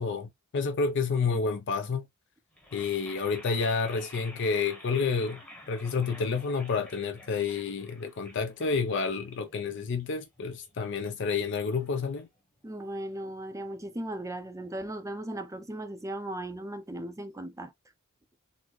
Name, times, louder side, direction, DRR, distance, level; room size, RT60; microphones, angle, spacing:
voice 1, 0.0-2.1 2.7-5.4 5.7-12.3, left 5 dB, 55° left, 0.5 m, -29 dB
sound 1, 2.5-12.6, left 1 dB, 5° left, 0.9 m, -51 dB
voice 2, 12.6-17.7, right 1 dB, 15° right, 0.5 m, -37 dB
3.9 x 2.1 x 3.0 m
head